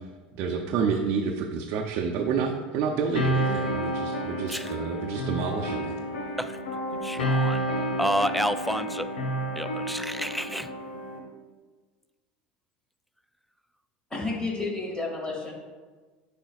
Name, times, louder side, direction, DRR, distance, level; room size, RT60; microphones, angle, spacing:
voice 1, 0.3-5.9, right 5 dB, 60° right, 2 dB, 0.6 m, -29 dB
sound 1, 3.1-11.2, right 1 dB, 90° left, 0.9 m, -30 dB
voice 2, 7.0-7.7 8.0-9.1 9.6-10.7, equal, ahead, 10 dB, 0.3 m, -30 dB
voice 3, 14.1-15.5, left 3 dB, 15° left, -1 dB, 2.0 m, -31 dB
8.8 x 5.0 x 2.4 m, 1.4 s
hypercardioid pair, 85°, 5 cm